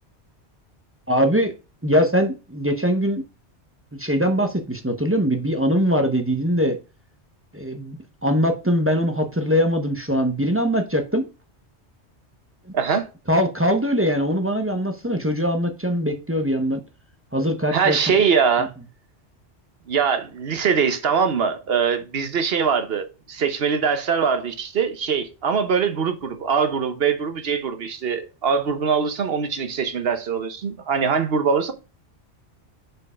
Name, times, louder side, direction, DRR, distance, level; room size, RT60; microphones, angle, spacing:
voice 1, 1.1-1.5 1.8-3.2 3.9-6.8 7.5-11.3 13.3-16.8 17.3-18.0, equal, 15° right, 0.6 m, -22 dB
voice 2, 12.7-13.1 17.7-18.7 19.9-31.7, right 6 dB, 65° right, 1.0 m, -22 dB
5.2 x 4.6 x 4.8 m
omnidirectional pair, 1.1 m